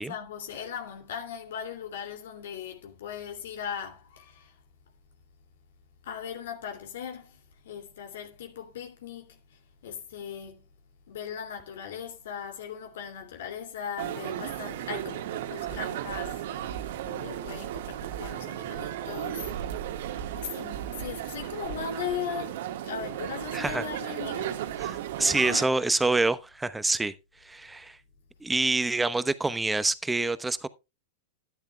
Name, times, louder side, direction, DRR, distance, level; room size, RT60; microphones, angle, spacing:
voice 1, 0.0-4.5 6.0-7.4 7.6-9.4 9.8-10.7 11.1-16.5 17.0-19.5 20.4-25.0 25.3-25.7 27.0-27.1, left 8 dB, 65° left, 2.6 m, -38 dB
sound 1, 14.0-25.6, right 11 dB, 60° right, 1.7 m, -35 dB
voice 2, 23.5-23.8 24.8-27.1 27.4-28.0 28.4-30.7, right 2 dB, 10° right, 0.9 m, -26 dB
13.5 x 10.5 x 2.3 m
hypercardioid pair, 100°, 0 cm